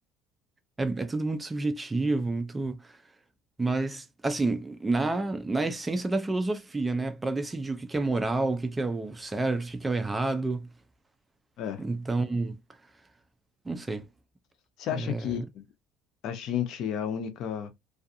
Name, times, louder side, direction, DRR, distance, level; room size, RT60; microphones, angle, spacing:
voice 1, 0.8-3.0 3.6-10.7 11.8-12.6 13.7-14.1 14.9-15.3, right 2 dB, 15° right, 0.4 m, -29 dB
voice 2, 14.8-15.6 16.2-17.7, left 9 dB, 60° left, 0.6 m, -32 dB
2.4 x 2.3 x 2.6 m
cardioid pair, 115°, 0 cm